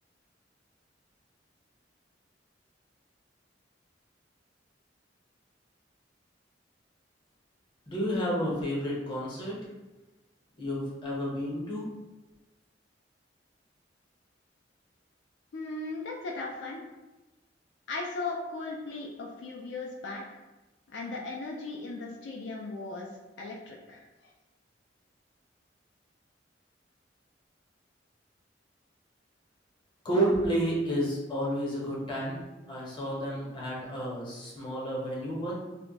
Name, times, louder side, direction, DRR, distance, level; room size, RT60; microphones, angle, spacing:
voice 1, 7.9-9.5 10.6-11.8 30.0-32.4 32.7-35.5, right 1 dB, 25° left, -5 dB, 0.8 m, -30 dB
voice 2, 15.5-16.8 17.9-20.2 20.9-23.1 23.4-24.0, left 3 dB, 70° left, -1 dB, 0.4 m, -37 dB
2.2 x 2.1 x 3.8 m, 1.1 s
head